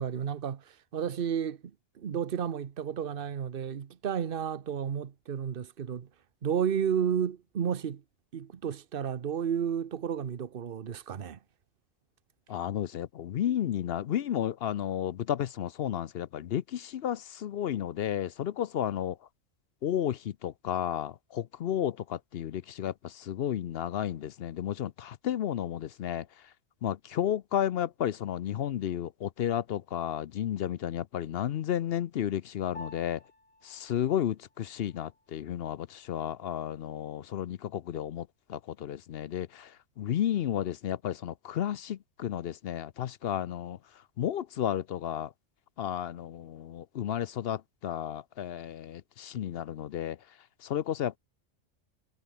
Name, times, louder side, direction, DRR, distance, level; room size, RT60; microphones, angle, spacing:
voice 1, 0.0-1.6 2.0-6.1 6.4-8.0 8.3-11.4, right 8 dB, 50° right, 1.1 m, -32 dB
voice 2, 12.5-19.3 19.8-26.5 26.8-33.2 33.6-45.3 45.8-51.2, left 10 dB, 60° left, 0.7 m, -32 dB
Piano, 32.7-42.4, left 2 dB, 85° left, 6.2 m, -56 dB
omnidirectional pair, 1.3 m